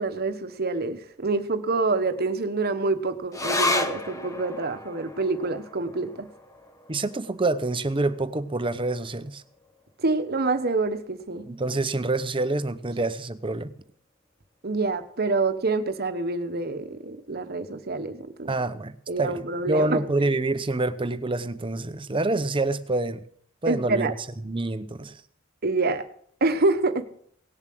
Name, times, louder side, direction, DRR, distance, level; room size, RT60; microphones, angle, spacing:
voice 1, 0.0-6.3 10.0-11.5 14.6-18.5 19.1-20.0 23.7-24.1 25.6-26.0 26.4-27.1, right 3 dB, 50° right, 1.1 m, -26 dB
sound 1, 3.3-10.1 10.4-10.5 10.8-11.5 12.1-12.2, left 2 dB, 15° left, 0.9 m, -33 dB
voice 2, 6.9-9.4 11.5-13.7 18.5-18.9 19.2-19.4 19.7-23.2 23.6-24.1 24.4-25.1, right 2 dB, 25° right, 0.8 m, -26 dB
18.0 x 7.3 x 7.7 m
head